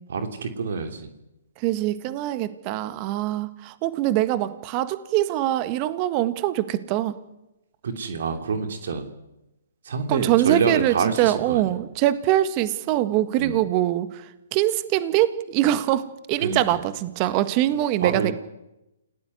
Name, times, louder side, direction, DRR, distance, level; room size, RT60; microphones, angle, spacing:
voice 1, 0.1-1.1 7.8-9.1 9.8-11.8 13.4-13.6 16.4-16.8 18.0-18.3, right 5 dB, 65° right, 7 dB, 3.0 m, -27 dB
voice 2, 1.6-7.1 10.1-14.1 14.5-18.3, right 14 dB, 35° right, 13 dB, 1.7 m, -23 dB
29.0 x 17.0 x 9.7 m, 0.95 s
hypercardioid pair, 135°, 0 cm